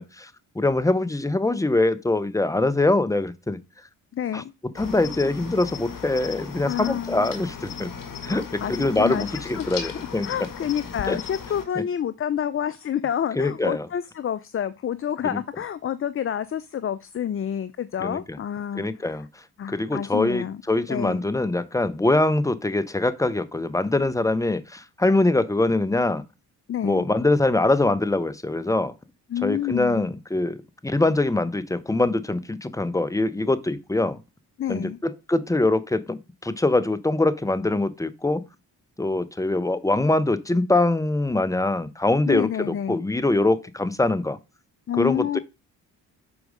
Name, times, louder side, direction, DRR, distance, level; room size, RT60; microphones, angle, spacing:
voice 1, 0.0-3.6 4.3-4.4 4.7-7.9 8.2-10.3 11.1-11.2 11.8-11.9 13.4-13.9 15.3-15.4 18.0-18.4 18.7-19.3 19.7-26.2 26.8-28.9 29.4-30.6 30.8-34.2 34.7-38.4 39.0-44.4 44.9-45.4, left 2 dB, 10° left, 0.8 m, -23 dB
voice 2, 4.1-4.5 6.7-7.3 8.3-19.2 19.6-20.6 20.9-21.2 26.7-27.1 29.3-30.1 34.6-35.0 42.3-43.0 44.9-45.4, left 9 dB, 30° left, 0.5 m, -29 dB
Cricket, 4.7-11.7, left 6 dB, 50° left, 1.8 m, -36 dB
7.2 x 4.6 x 5.1 m
hypercardioid pair, 50°, 42 cm